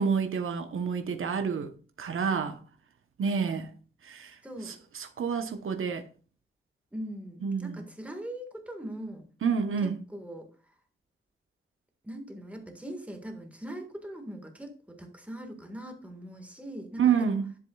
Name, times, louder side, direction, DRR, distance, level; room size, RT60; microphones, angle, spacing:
voice 1, 0.0-1.7 2.0-2.6 3.2-3.7 4.0-4.3 4.6-6.0 7.4-7.8 9.4-9.9 17.0-17.4, right 6 dB, 80° right, 1.0 m, -28 dB
voice 2, 4.4-4.8 6.9-9.2 10.1-10.5 12.0-17.4, right 1 dB, 5° right, 1.7 m, -41 dB
10.5 x 7.4 x 2.3 m
wide cardioid pair, 140°, 21 cm